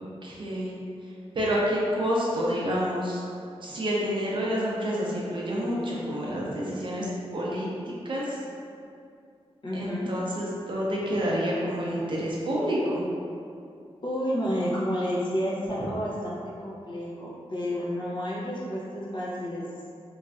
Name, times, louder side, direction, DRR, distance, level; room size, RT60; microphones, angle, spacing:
voice 1, 0.2-0.7 1.0-3.2 3.6-7.7 8.0-8.4 9.7-13.0, equal, 50° right, -5 dB, 0.5 m, -28 dB
voice 2, 9.6-10.1 14.0-19.6, equal, 45° left, -6 dB, 0.6 m, -30 dB
3.1 x 2.5 x 2.3 m, 2.4 s
wide cardioid pair, 140°, 11 cm